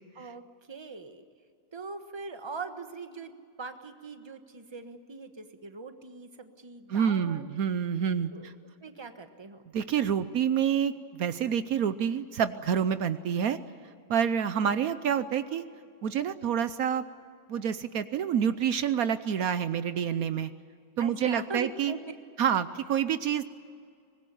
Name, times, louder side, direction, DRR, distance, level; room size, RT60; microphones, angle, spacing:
voice 1, 0.7-1.2 1.7-3.3 3.6-7.5 8.3-8.5 8.8-9.6 14.5-14.9 21.0-22.1, right 4 dB, 20° right, 7 dB, 1.3 m, -41 dB
voice 2, 6.9-8.5 9.7-13.6 14.1-15.6 16.0-17.0 17.5-20.5 21.0-21.9 22.4-23.4, right 8 dB, 70° right, 12 dB, 1.2 m, -28 dB
24.0 x 20.0 x 9.8 m, 2.3 s
omnidirectional pair, 1.6 m